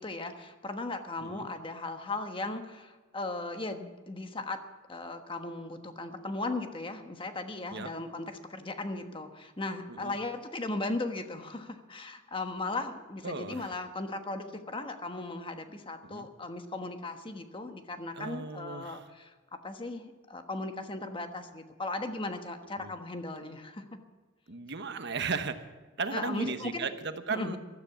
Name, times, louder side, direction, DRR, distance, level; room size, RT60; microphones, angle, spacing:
voice 1, 0.0-4.6 4.9-19.3 19.6-24.0 26.1-26.9 27.3-27.6, left 2 dB, 25° left, 7 dB, 1.3 m, -37 dB
voice 2, 13.2-13.8 16.0-16.3 18.2-19.1 22.8-22.9 24.5-25.7 26.0-27.6, right 4 dB, 55° right, 9 dB, 1.1 m, -36 dB
15.5 x 13.0 x 5.9 m, 1.3 s
head